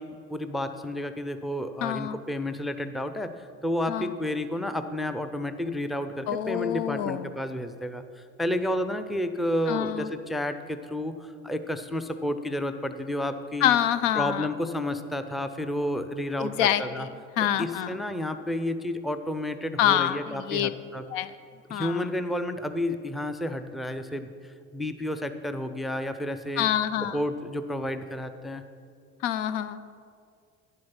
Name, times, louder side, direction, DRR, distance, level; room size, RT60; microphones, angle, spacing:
voice 1, 0.0-8.0 8.4-13.8 14.2-17.1 17.6-21.0 21.7-26.7 27.1-28.6, left 1 dB, ahead, 9 dB, 0.5 m, -31 dB
voice 2, 1.8-2.2 3.9-4.1 6.3-7.3 9.7-10.1 13.6-14.5 16.4-17.1 17.4-17.9 19.8-20.7 21.1-21.4 21.7-22.0 26.6-27.2 29.2-29.8, left 11 dB, 70° left, 13 dB, 0.6 m, -26 dB
9.9 x 7.6 x 5.8 m, 2.3 s
hypercardioid pair, 60°, 40 cm